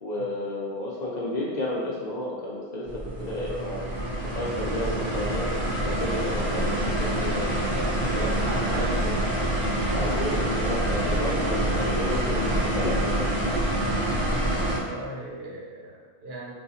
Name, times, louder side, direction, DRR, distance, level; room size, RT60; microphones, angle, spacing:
voice 1, 0.0-2.9 3.2-3.9 4.3-5.5 5.8-7.7 8.1-8.3 8.7-9.2 9.9-12.4 12.8-13.3, left 1 dB, 50° left, -5 dB, 0.6 m, -32 dB
sound 1, 2.9-14.8, right 1 dB, 35° right, 0.5 m, -26 dB
voice 2, 7.6-9.0 14.6-16.5, right 2 dB, 70° right, -3 dB, 0.9 m, -37 dB
3.7 x 2.3 x 2.8 m, 1.5 s
omnidirectional pair, 1.1 m